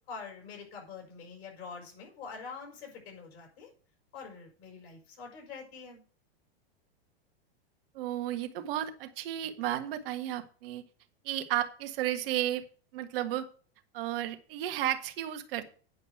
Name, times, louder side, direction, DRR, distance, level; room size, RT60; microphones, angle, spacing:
voice 1, 0.1-3.7 4.1-6.0, left 5 dB, 45° left, 1 dB, 6.0 m, -45 dB
voice 2, 7.9-10.8 11.2-12.6 12.9-13.5 13.9-15.6, right 12 dB, 65° right, 6 dB, 1.6 m, -33 dB
9.5 x 5.2 x 7.9 m, 0.41 s
hypercardioid pair, 115°, 31 cm